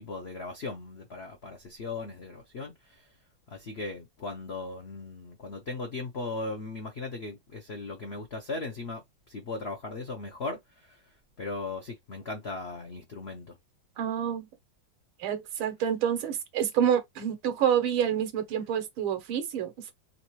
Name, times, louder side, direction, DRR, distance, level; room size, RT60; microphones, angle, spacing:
voice 1, 0.0-3.1 3.5-9.0 9.3-11.0 11.4-13.5, left 3 dB, 70° left, 0.6 m, -38 dB
voice 2, 14.0-14.5 15.2-19.9, right 9 dB, 85° right, 1.7 m, -28 dB
4.2 x 3.1 x 3.0 m
omnidirectional pair, 2.2 m